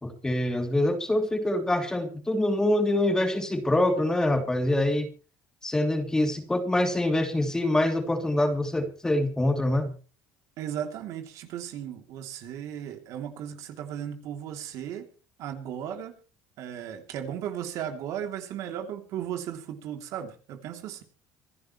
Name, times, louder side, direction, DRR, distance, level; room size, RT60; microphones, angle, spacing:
voice 1, 0.0-5.1 5.6-10.0, left 1 dB, 10° left, 6 dB, 2.9 m, -25 dB
voice 2, 10.6-15.1 15.4-16.1 16.6-21.0, right 9 dB, 70° right, 5 dB, 3.0 m, -36 dB
26.0 x 11.0 x 3.2 m, 0.36 s
cardioid pair, 115°, 6 cm